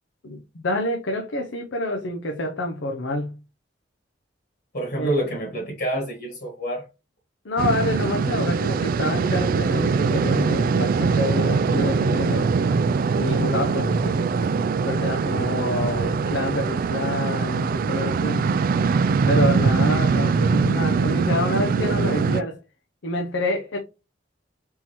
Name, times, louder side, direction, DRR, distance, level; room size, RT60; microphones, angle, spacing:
voice 1, 0.2-3.4 4.9-5.2 7.4-12.5 13.1-14.2 14.8-18.5 19.3-22.6 23.0-23.8, left 1 dB, 80° left, 0.7 m, -27 dB
voice 2, 4.7-6.8, right 1 dB, 60° left, 1.8 m, -27 dB
sound 1, 7.6-22.4, right 5 dB, 50° right, 0.3 m, -22 dB
4.3 x 3.7 x 3.0 m
head